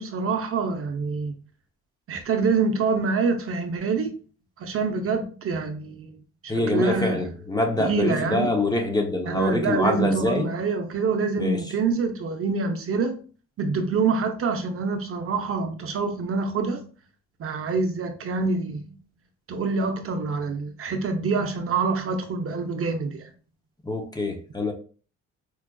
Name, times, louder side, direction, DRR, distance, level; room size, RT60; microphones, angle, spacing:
voice 1, 0.0-1.3 2.1-4.1 4.6-6.1 6.4-7.2 7.8-8.6 9.3-13.2 13.6-16.8 17.4-18.9 19.5-23.2, right 4 dB, 50° right, 0.6 m, -26 dB
voice 2, 6.5-10.5 11.4-11.6 23.9-24.7, left 2 dB, 15° left, 0.6 m, -25 dB
4.5 x 2.3 x 2.2 m
cardioid pair, 90°, 30 cm